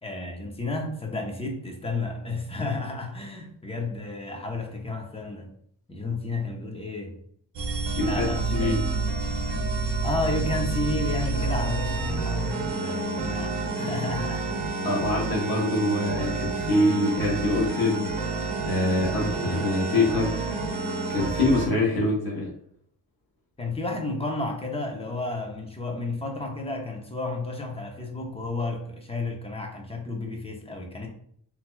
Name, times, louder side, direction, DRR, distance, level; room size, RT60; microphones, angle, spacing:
voice 1, 0.0-5.5 5.9-7.2 8.0-8.7 9.9-14.5 23.6-31.1, left 2 dB, 15° left, 2 dB, 0.8 m, -32 dB
sound 1, 7.6-21.7, right 3 dB, 70° right, 0.8 m, -29 dB
voice 2, 7.9-8.8 14.8-20.6 21.1-22.5, left 2 dB, 55° left, -2 dB, 1.1 m, -25 dB
4.0 x 2.8 x 2.2 m, 0.64 s
cardioid pair, 80°, 43 cm